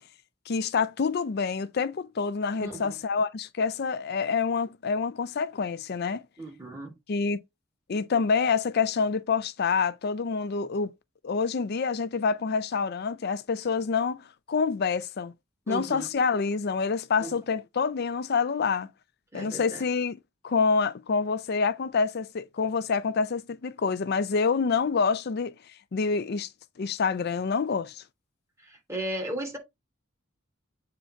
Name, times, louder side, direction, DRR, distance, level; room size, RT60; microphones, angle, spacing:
voice 1, 0.5-6.2 7.1-7.4 7.9-10.9 11.2-15.3 15.7-18.9 19.3-20.2 20.4-25.5 25.9-26.5 26.8-28.0, left 5 dB, 50° left, 0.5 m, -27 dB
voice 2, 2.6-2.9 6.4-6.9 15.7-16.1 17.2-17.3 19.3-19.8 28.6-29.6, right 1 dB, 15° right, 2.9 m, -35 dB
8.1 x 3.8 x 4.4 m
head